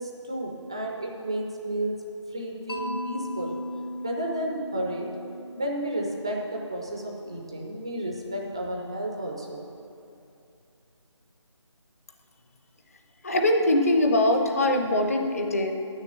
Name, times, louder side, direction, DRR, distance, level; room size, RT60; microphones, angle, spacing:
voice 1, 0.0-2.0 2.3-3.6 4.0-5.1 5.5-9.6, right 1 dB, 10° right, 0 dB, 0.4 m, -32 dB
Mallet percussion, 2.7-6.7, left 1 dB, 50° left, 1.2 m, -37 dB
voice 2, 13.2-15.7, left 1 dB, 30° left, 4 dB, 0.7 m, -22 dB
9.1 x 6.6 x 8.6 m, 2.6 s
figure-of-eight pair, 160°, 16 cm